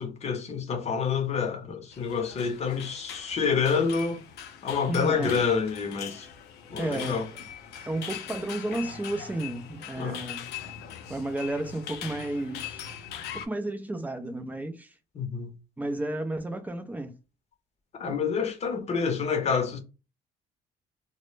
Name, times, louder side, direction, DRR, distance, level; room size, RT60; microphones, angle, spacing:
voice 1, 0.0-4.2 4.6-6.3 6.7-7.3 10.0-10.2 15.2-15.5 18.0-19.8, left 6 dB, 40° left, 0.7 m, -28 dB
sound 1, 1.9-13.5, left 8 dB, 75° left, 0.5 m, -41 dB
voice 2, 4.9-5.4 6.8-7.3 7.9-10.5 11.1-13.0 13.3-14.9 15.8-17.1, right 1 dB, 10° right, 0.4 m, -32 dB
2.0 x 2.0 x 3.1 m
cardioid pair, 110°, 17 cm